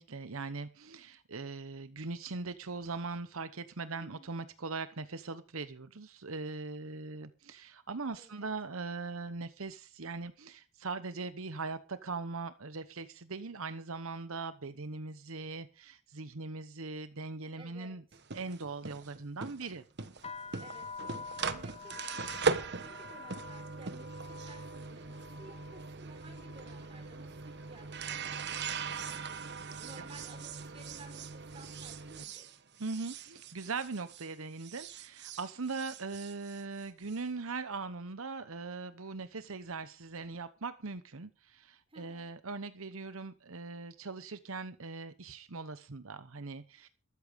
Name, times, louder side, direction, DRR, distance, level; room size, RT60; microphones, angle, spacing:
voice 1, 0.0-18.0 18.3-19.8 29.7-30.0 32.8-46.9, right 4 dB, 65° right, 0.9 m, -40 dB
voice 2, 4.0-4.3 8.1-8.5 17.5-18.2 20.6-29.3 29.8-32.6 41.9-42.3, right 2 dB, 25° right, 4.4 m, -56 dB
sound 1, 18.1-34.3 34.6-37.2, right 4 dB, 50° right, 1.2 m, -40 dB
sound 2, 20.2-28.1 28.4-29.0 29.7-30.0 30.2-31.7, left 5 dB, 25° left, 0.8 m, -49 dB
13.5 x 13.5 x 5.2 m
head